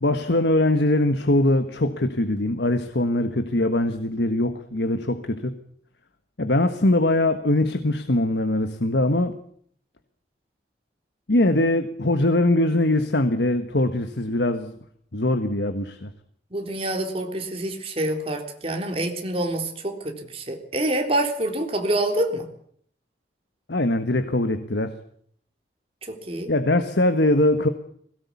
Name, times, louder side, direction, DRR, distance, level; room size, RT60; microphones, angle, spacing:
voice 1, 0.0-5.6 6.4-9.3 11.3-14.8 15.1-16.1 23.7-25.0 26.5-27.7, left 1 dB, 80° left, 8 dB, 1.4 m, -22 dB
voice 2, 16.5-22.5 26.3-26.5, right 1 dB, 35° right, 3 dB, 3.6 m, -26 dB
21.0 x 18.0 x 8.4 m, 0.63 s
head